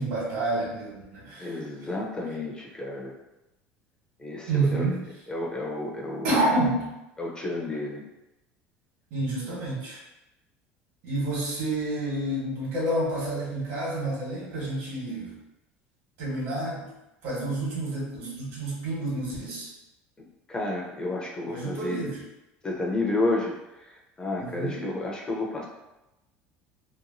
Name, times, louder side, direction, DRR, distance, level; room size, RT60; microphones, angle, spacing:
voice 1, 0.0-1.5 4.5-5.0 6.2-6.9 9.1-10.0 11.0-15.3 16.2-16.9 17.2-19.7 21.5-22.2 24.4-24.9, right 2 dB, 75° right, -5 dB, 1.4 m, -29 dB
voice 2, 1.4-3.1 4.2-4.9 5.3-6.4 7.2-8.0 20.5-22.0 22.6-23.5 24.2-25.7, left 2 dB, 20° left, -2 dB, 0.5 m, -31 dB
2.9 x 2.2 x 2.6 m, 0.94 s
supercardioid pair, 120°, 5 cm